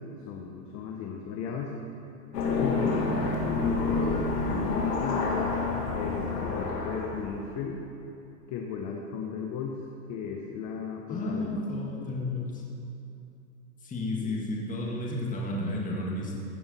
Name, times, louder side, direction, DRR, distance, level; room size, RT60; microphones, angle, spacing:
voice 1, 0.3-1.7 2.6-5.6 5.9-7.8 8.5-9.8 10.1-11.6 12.0-12.1 14.2-14.3, left 6 dB, 35° left, 0 dB, 1.1 m, -35 dB
sound 1, 2.3-7.4, left 3 dB, 85° left, 2.4 m, -28 dB
voice 2, 11.1-12.6 13.8-16.3, left 1 dB, 15° left, -3 dB, 1.9 m, -32 dB
15.5 x 7.0 x 5.6 m, 2.7 s
supercardioid pair, 135°, 46 cm